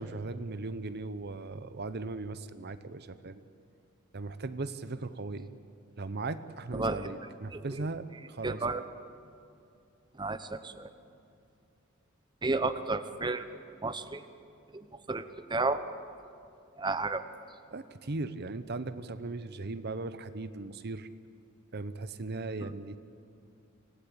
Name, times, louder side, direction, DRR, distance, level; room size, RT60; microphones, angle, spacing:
voice 1, 0.0-3.4 4.1-5.5 6.0-8.8 17.7-21.1 21.7-23.0, right 3 dB, 55° right, 12 dB, 0.9 m, -38 dB
voice 2, 8.4-8.8 10.2-10.9 12.4-13.5 13.8-14.2 15.1-15.2 15.5-15.8 16.8-17.2, right 3 dB, 20° right, 11 dB, 0.9 m, -31 dB
26.0 x 17.5 x 8.7 m, 2.6 s
head